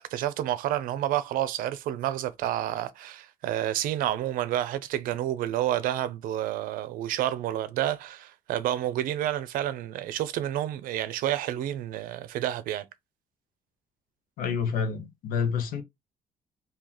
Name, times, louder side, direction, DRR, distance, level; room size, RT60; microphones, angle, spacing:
voice 1, 0.0-12.8, right 12 dB, 80° right, 0.6 m, -29 dB
voice 2, 14.4-15.8, left 6 dB, 90° left, 1.0 m, -28 dB
2.9 x 2.8 x 3.9 m
cardioid pair, 135°, 14 cm